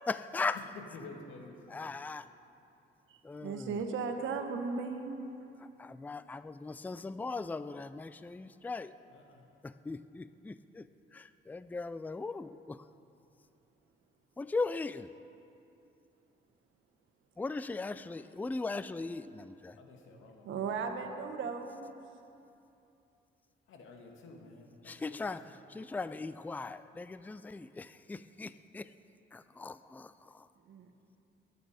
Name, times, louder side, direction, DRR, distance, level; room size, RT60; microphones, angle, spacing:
voice 1, 0.1-0.6 1.7-2.2 3.2-3.7 5.8-8.9 9.6-10.5 11.1-12.8 14.4-15.1 17.4-19.8 24.9-25.4 25.7-28.9 29.3-30.1, left 3 dB, 10° left, 14 dB, 0.4 m, -38 dB
voice 2, 0.7-1.9 9.1-9.4 19.8-20.6 23.7-25.8, left 3 dB, 85° left, 2 dB, 2.0 m, -51 dB
voice 3, 3.4-5.2 20.4-22.0 30.7-30.9, right 5 dB, 80° right, 5 dB, 1.4 m, -36 dB
22.0 x 9.3 x 5.0 m, 2.8 s
cardioid pair, 90°, 20 cm